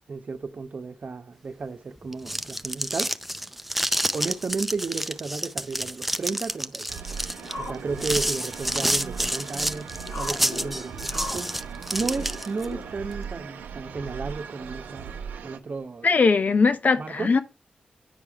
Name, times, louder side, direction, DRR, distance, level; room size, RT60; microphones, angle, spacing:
voice 1, 0.1-3.1 4.1-7.2 7.6-11.5 11.9-15.2 15.4-16.1 17.0-17.3, right 4 dB, 55° right, 1.0 m, -33 dB
sound 1, 2.0-12.7, equal, 5° right, 0.6 m, -29 dB
sound 2, 6.9-15.6, right 6 dB, 85° right, 0.7 m, -38 dB
sound 3, 7.4-13.0, left 2 dB, 85° left, 2.9 m, -40 dB
voice 2, 16.0-17.4, left 4 dB, 60° left, 0.9 m, -20 dB
9.4 x 4.9 x 3.5 m
supercardioid pair, 40°, 3 cm